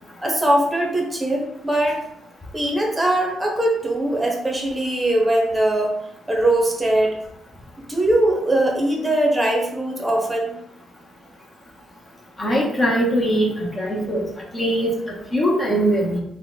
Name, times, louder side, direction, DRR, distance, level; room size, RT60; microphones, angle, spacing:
voice 1, 0.2-2.0 2.5-6.0 6.3-7.2 7.9-10.5, right 1 dB, 10° right, 0 dB, 1.1 m, -21 dB
voice 2, 12.4-14.2 14.5-16.2, equal, 25° left, -3 dB, 1.2 m, -21 dB
4.1 x 2.5 x 3.9 m, 0.82 s
cardioid pair, 90°, 0 cm